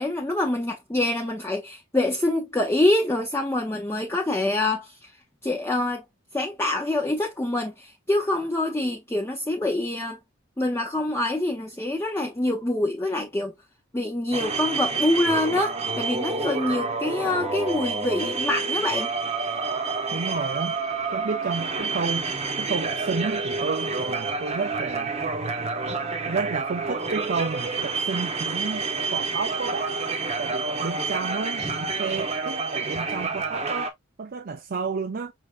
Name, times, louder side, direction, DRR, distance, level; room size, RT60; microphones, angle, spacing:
voice 1, 0.0-5.1 5.4-6.0 6.3-10.2 10.6-13.5 13.9-19.1, left 2 dB, 10° left, 0.5 m, -25 dB
sound 1, 14.3-33.9, right 4 dB, 30° right, 0.9 m, -28 dB
voice 2, 20.1-20.8 21.1-25.2 26.3-30.0 30.4-33.9 34.2-35.3, right 4 dB, 45° right, 0.5 m, -31 dB
5.4 x 3.4 x 2.4 m
head